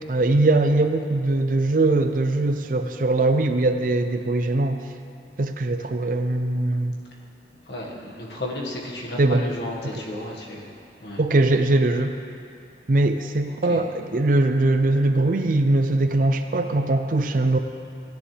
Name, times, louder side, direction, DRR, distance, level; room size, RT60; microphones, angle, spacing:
voice 1, 0.1-4.8 5.4-6.9 9.2-9.4 11.2-12.1 12.9-17.6, right 2 dB, 50° right, 7 dB, 0.5 m, -21 dB
voice 2, 7.6-10.7 11.0-11.2 13.5-13.9, left 1 dB, 75° left, -2 dB, 1.7 m, -33 dB
17.0 x 9.9 x 3.3 m, 2.6 s
head